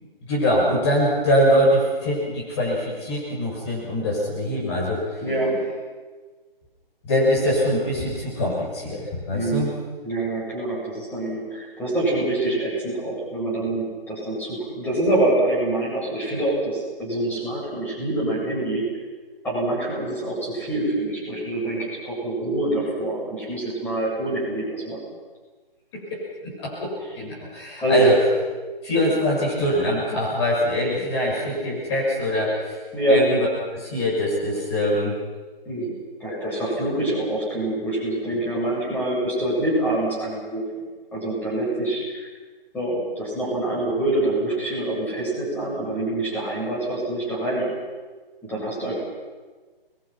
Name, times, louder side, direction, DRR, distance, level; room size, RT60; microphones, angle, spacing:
voice 1, 0.3-5.2 7.0-9.7 25.9-28.2 28.8-32.8 33.1-33.5 33.7-35.2 36.3-36.6, left 1 dB, 30° left, -4 dB, 6.7 m, -23 dB
voice 2, 5.2-5.6 9.3-9.7 10.0-18.8 19.4-25.0 27.8-28.1 32.9-33.2 35.6-35.9 36.2-40.6 41.1-42.3 42.7-47.7 48.4-49.0, right 1 dB, 5° left, -6 dB, 7.9 m, -25 dB
28.5 x 22.0 x 6.0 m, 1.4 s
figure-of-eight pair, 150°, 29 cm